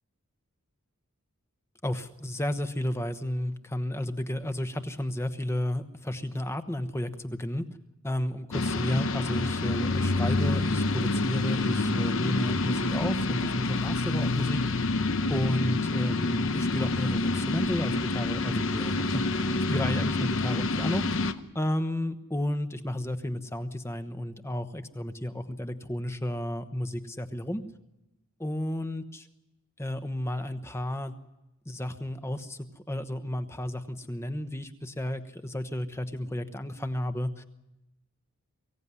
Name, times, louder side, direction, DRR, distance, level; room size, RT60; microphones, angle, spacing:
voice 1, 1.8-7.7 8.0-14.6 15.3-27.6 28.4-29.3 29.8-31.1 31.7-32.6 32.9-37.4, left 1 dB, 10° left, 8 dB, 1.0 m, -32 dB
sound 1, 8.5-21.3, left 2 dB, 60° left, 1.0 m, -27 dB
23.5 x 16.5 x 9.7 m, 0.96 s
head